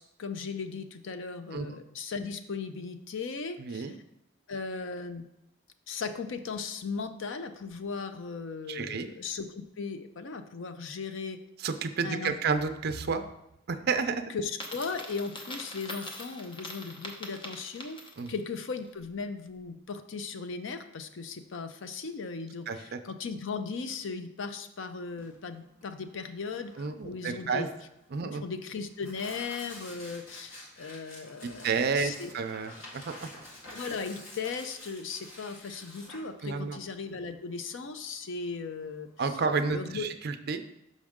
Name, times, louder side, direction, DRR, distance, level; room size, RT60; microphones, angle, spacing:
voice 1, 0.0-4.0 4.5-5.2 5.9-11.4 12.0-12.5 14.3-18.0 18.3-27.7 28.4-32.3 33.7-39.1 39.7-40.1, left 4 dB, 65° left, 9 dB, 0.5 m, -37 dB
voice 2, 3.6-3.9 8.7-9.1 11.6-13.2 13.7-14.2 18.2-18.3 22.7-23.0 26.8-27.7 28.1-28.4 31.4-33.3 36.4-36.8 39.2-40.6, right 5 dB, 55° right, 8 dB, 0.5 m, -31 dB
Coin (dropping), 14.5-18.4, left 1 dB, 25° left, 0.8 m, -43 dB
Tearing, 25.1-39.3, left 1 dB, 85° left, 1.8 m, -49 dB
6.2 x 5.3 x 3.6 m, 0.83 s
head